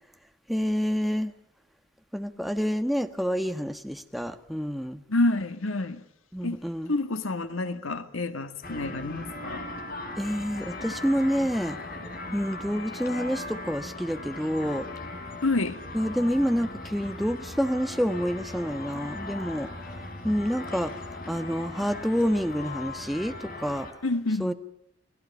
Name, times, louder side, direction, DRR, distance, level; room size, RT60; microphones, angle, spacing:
voice 1, 0.5-1.3 2.1-5.0 6.3-6.9 10.2-11.8 12.3-14.9 15.9-19.7 20.2-20.9 21.3-23.9 24.4-24.5, equal, ahead, 1.3 m, -28 dB
voice 2, 5.1-6.0 6.4-6.6 6.9-9.7 15.4-15.8 24.0-24.5, left 2 dB, 90° left, 1.8 m, -28 dB
sound 1, 8.6-23.9, left 2 dB, 45° left, 4.5 m, -38 dB
29.5 x 19.5 x 5.5 m
head